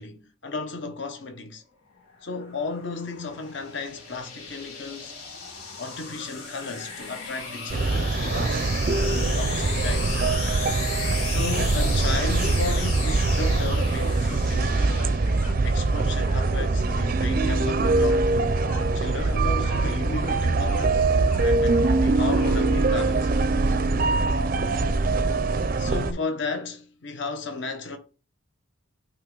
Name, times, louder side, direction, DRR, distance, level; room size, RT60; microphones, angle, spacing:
voice 1, 0.0-1.6 2.2-5.1 5.8-8.7 9.0-10.2 11.2-15.1 15.6-18.6 18.9-21.0 21.4-23.3 25.8-28.0, left 3 dB, 55° left, 0.9 m, -34 dB
sound 1, 2.1-15.6, left 4 dB, 85° left, 1.9 m, -36 dB
sound 2, 7.7-26.1, right 3 dB, 40° right, 0.4 m, -23 dB
sound 3, 14.2-14.5 14.8-15.6 15.8-16.5 16.8-17.0 17.4-17.6 17.9-18.2 18.5-18.9 19.1-19.3 19.6-19.9 20.2-20.9 21.3-22.0 22.3-23.1, left 2 dB, 35° left, 1.3 m, -43 dB
8.6 x 3.0 x 3.8 m
head